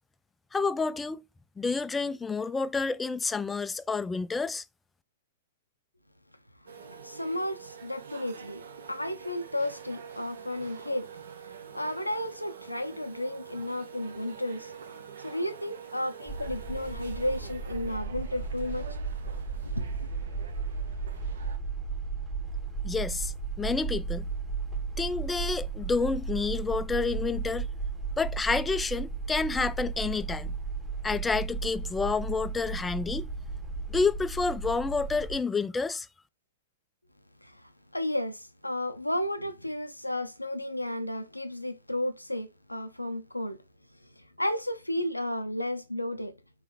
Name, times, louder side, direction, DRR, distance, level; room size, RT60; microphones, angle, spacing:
voice 1, 0.5-1.2 1.6-4.6 22.8-24.3 25.0-27.7 28.2-30.5 31.0-33.3 33.9-36.1, left 4 dB, 10° left, 0.3 m, -29 dB
sound 1, 6.7-21.6, right 7 dB, 65° right, 0.8 m, -46 dB
voice 2, 6.8-11.1 11.5-14.7 15.2-18.9 19.6-19.9 37.4-43.6 44.2-46.3, left 1 dB, 85° left, 0.5 m, -33 dB
sound 2, 16.3-35.4, right 4 dB, 15° right, 1.3 m, -35 dB
4.6 x 3.1 x 3.4 m
figure-of-eight pair, 105°, 0 cm